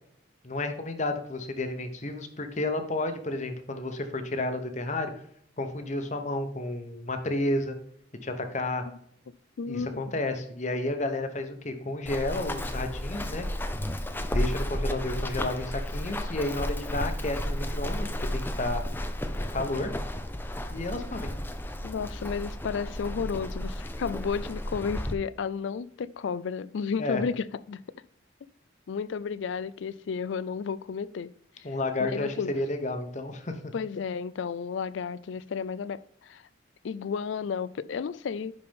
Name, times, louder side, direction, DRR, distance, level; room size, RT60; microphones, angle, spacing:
voice 1, 0.4-5.1 5.6-7.8 8.2-8.8 9.7-13.5 14.3-18.8 19.4-19.9 20.7-21.3 27.0-27.2 31.6-33.7, left 2 dB, 40° left, 0.9 m, -31 dB
voice 2, 9.6-10.0 21.8-27.8 28.9-31.3 31.6-31.7 32.0-32.5 33.7-36.4 36.8-38.5, left 6 dB, 75° left, 0.4 m, -32 dB
Run, 12.1-25.1, left 1 dB, 10° left, 0.5 m, -33 dB
10.5 x 4.3 x 3.6 m
head